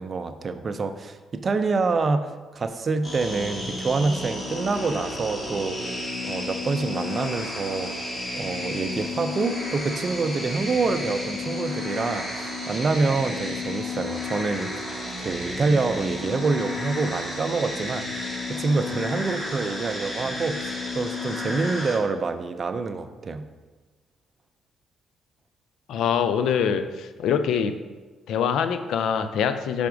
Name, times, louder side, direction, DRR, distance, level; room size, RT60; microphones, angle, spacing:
voice 1, 0.0-5.9 6.2-7.9 8.3-14.7 15.2-18.1 18.5-23.5, right 4 dB, 40° right, 10 dB, 0.4 m, -26 dB
sound 1, 3.0-22.0, left 2 dB, 20° left, 1.5 m, -32 dB
voice 2, 25.9-27.8 28.3-29.9, left 7 dB, 80° left, 10 dB, 0.4 m, -24 dB
5.7 x 3.5 x 5.0 m, 1.3 s
cardioid pair, 90°, 0 cm